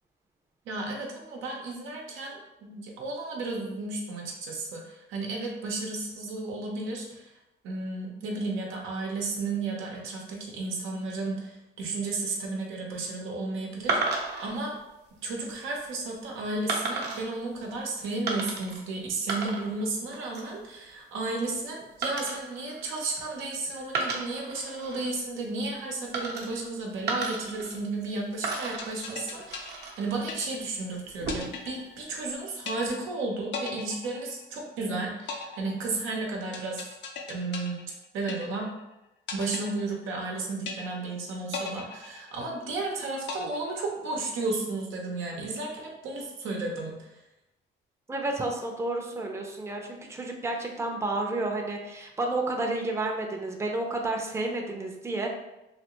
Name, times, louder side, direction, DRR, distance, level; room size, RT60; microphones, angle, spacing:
voice 1, 0.7-7.3 7.6-14.8 15.2-36.8 37.3-37.9 38.1-38.7 39.3-47.1, right 3 dB, 90° right, 0 dB, 0.8 m, -33 dB
sound 1, 13.9-14.5 15.2-15.6 16.7-17.3 18.3-18.8 19.1-19.9 20.1-20.6 22.0-23.5 23.9-25.1 26.1-26.7 27.1-28.1 28.4-30.1 31.1-31.7, right 3 dB, 60° right, 0.8 m, -33 dB
sound 2, 28.5-30.8 31.3-32.3 32.7-33.2 33.5-34.8 35.3-38.8 39.3-40.3 40.7-41.2 41.5-42.8 43.3-44.3, left 5 dB, 65° left, 0.6 m, -39 dB
voice 2, 48.1-55.3, right 2 dB, 15° right, 1 dB, 0.5 m, -31 dB
3.3 x 2.4 x 3.0 m, 0.92 s
cardioid pair, 90°, 20 cm